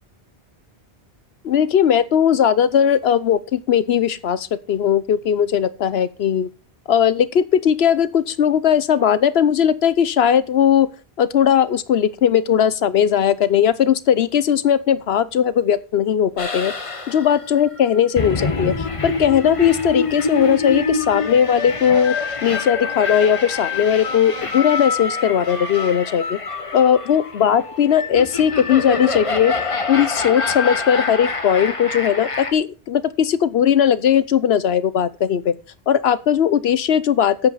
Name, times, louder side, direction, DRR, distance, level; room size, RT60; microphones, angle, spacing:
voice 1, 1.4-6.5 6.9-10.9 11.2-16.7 17.1-22.2 22.4-26.4 26.7-29.5 29.9-35.5 35.9-37.5, left 8 dB, 75° left, 16 dB, 1.0 m, -18 dB
sound 1, 16.4-32.5, left 3 dB, 30° left, 1.2 m, -27 dB
sound 2, 19.6-31.2, left 6 dB, 60° left, 1.3 m, -31 dB
8.8 x 8.0 x 5.6 m, 0.32 s
omnidirectional pair, 1.1 m